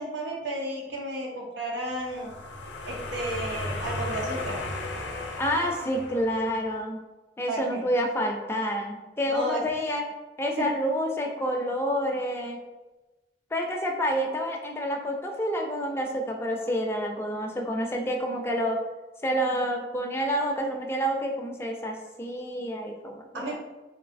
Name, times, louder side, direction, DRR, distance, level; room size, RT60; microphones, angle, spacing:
voice 1, 0.0-2.3 2.9-4.6 7.5-7.9 9.3-9.9 10.6-10.7 23.3-23.6, right 1 dB, 80° right, -1 dB, 0.7 m, -33 dB
sound 1, 2.0-6.7, left 2 dB, 75° left, 0.5 m, -35 dB
voice 2, 5.4-7.0 7.4-10.0 10.4-12.6 13.5-18.8 19.2-23.6, equal, 15° left, 1 dB, 0.3 m, -28 dB
3.1 x 2.6 x 2.5 m, 1.1 s
head